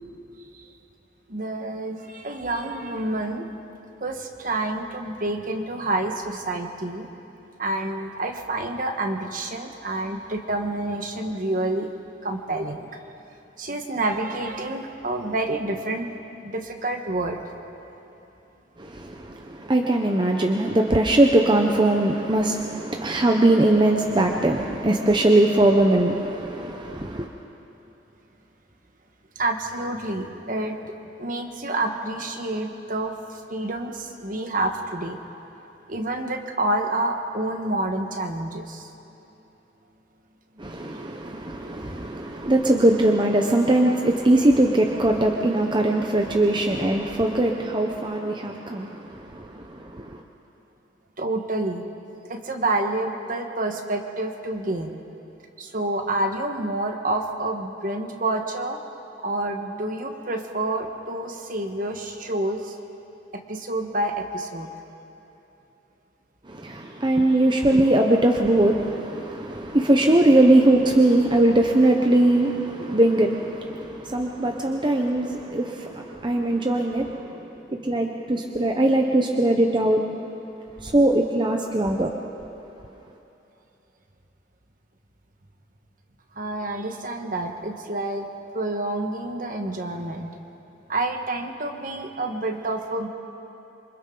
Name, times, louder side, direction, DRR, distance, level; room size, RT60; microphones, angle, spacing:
voice 1, 1.3-3.5 4.0-7.1 7.6-11.9 12.2-12.8 13.6-16.1 16.4-17.4 29.3-30.9 31.2-35.2 35.9-38.9 51.2-51.8 52.3-54.9 55.6-58.8 59.2-62.8 63.3-64.7 80.9-81.0 86.3-88.3 88.5-90.4 90.9-93.1, right 2 dB, 50° right, 4 dB, 1.4 m, -28 dB
voice 2, 18.8-27.3 40.6-50.2 66.4-80.3 80.8-82.2, right 1 dB, 25° right, 2 dB, 0.9 m, -21 dB
27.0 x 24.5 x 3.9 m, 3.0 s
head